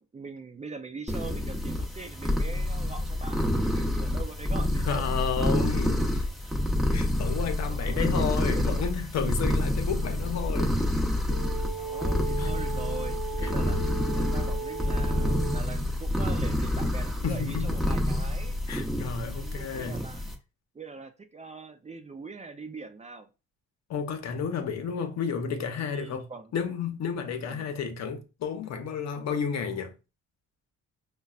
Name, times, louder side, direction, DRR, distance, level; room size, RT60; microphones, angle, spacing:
voice 1, 0.0-5.1 6.0-6.1 7.6-8.9 11.7-18.6 19.3-20.2 20.7-23.3 25.7-26.5 27.4-27.7, right 4 dB, 25° right, 0.4 m, -42 dB
sound 1, 1.1-20.3, left 1 dB, ahead, 0.9 m, -28 dB
voice 2, 4.8-6.3 6.9-10.7 12.4-12.5 13.4-13.5 17.2-17.8 18.7-20.1 23.9-29.9, left 6 dB, 60° left, 0.8 m, -32 dB
sound 2, 11.2-15.6, right 4 dB, 80° right, 0.8 m, -36 dB
5.2 x 2.2 x 2.4 m
cardioid pair, 90°, 30 cm